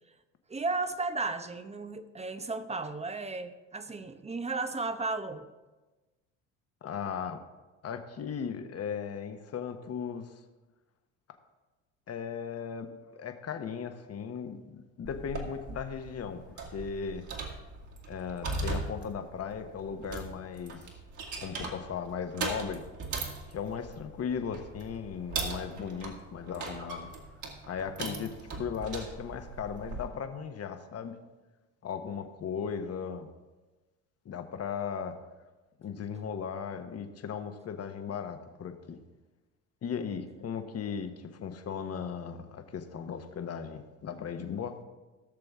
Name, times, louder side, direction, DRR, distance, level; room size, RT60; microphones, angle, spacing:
voice 1, 0.5-5.5, right 3 dB, 15° right, 10 dB, 0.8 m, -34 dB
voice 2, 6.8-7.4 7.8-10.3 12.1-17.2 18.1-20.8 21.3-22.8 23.5-27.1 27.7-31.2 31.8-33.3 34.2-35.2 35.8-39.0 39.8-44.8, left 7 dB, 40° left, 7 dB, 1.3 m, -37 dB
sound 1, 15.0-30.1, right 3 dB, 50° right, 2.4 m, -39 dB
17.0 x 6.7 x 3.6 m, 1.2 s
hypercardioid pair, 70°, 39 cm